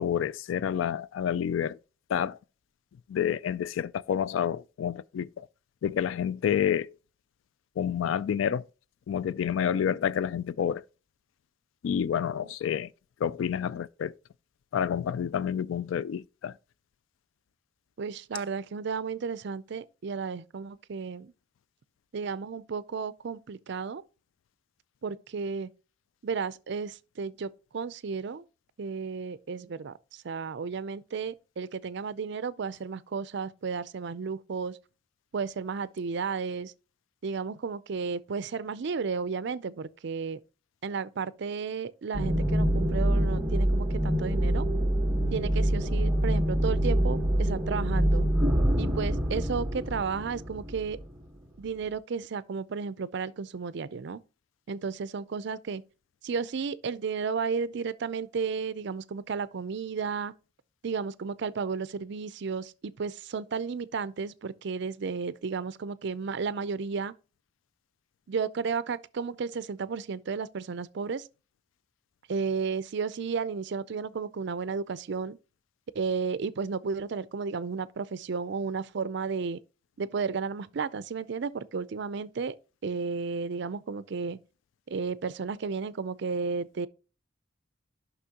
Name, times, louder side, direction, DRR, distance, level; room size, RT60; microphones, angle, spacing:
voice 1, 0.0-1.8 2.1-2.4 3.1-5.5 5.8-6.9 7.8-8.6 9.1-10.8 11.8-12.9 13.2-14.1 14.7-16.5, left 8 dB, 85° left, 0.3 m, -29 dB
voice 2, 18.0-21.3 22.1-24.0 25.0-25.7 26.2-28.4 28.8-34.8 35.3-36.7 37.2-40.4 40.8-44.7 45.3-48.3 48.8-51.0 51.6-54.2 54.7-55.8 56.2-60.3 60.8-67.1 68.3-71.3 72.3-75.4 75.9-79.6 80.0-82.5 82.8-84.4 84.9-86.9, right 5 dB, 65° right, 0.5 m, -33 dB
sound 1, 42.1-51.4, equal, 10° right, 1.3 m, -26 dB
9.9 x 5.9 x 2.9 m
head